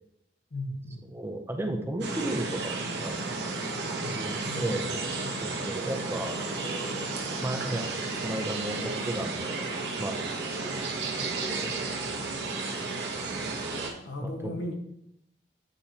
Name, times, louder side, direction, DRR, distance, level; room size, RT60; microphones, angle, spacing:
voice 1, 0.5-1.1 4.0-5.4 14.0-14.7, left 1 dB, 80° left, 2 dB, 1.2 m, -37 dB
voice 2, 1.1-2.8 3.0-3.3 4.1-4.8 5.4-6.4 7.4-9.6 10.0-10.8 11.2-11.7 12.6-13.3 14.2-14.5, right 1 dB, 15° right, 4 dB, 0.5 m, -34 dB
sound 1, 2.0-13.9, right 3 dB, 65° right, 1.0 m, -33 dB
8.4 x 4.4 x 2.8 m, 0.76 s
head